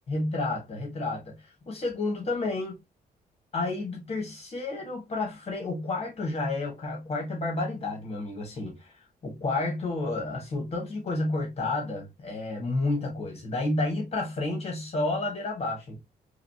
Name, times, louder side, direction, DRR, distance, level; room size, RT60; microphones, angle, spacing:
voice 1, 0.1-1.3 1.7-2.8 3.5-8.9 9.2-16.0, left 2 dB, 40° left, 1.7 m, -30 dB
3.9 x 3.2 x 2.8 m
cardioid pair, 110°, 17 cm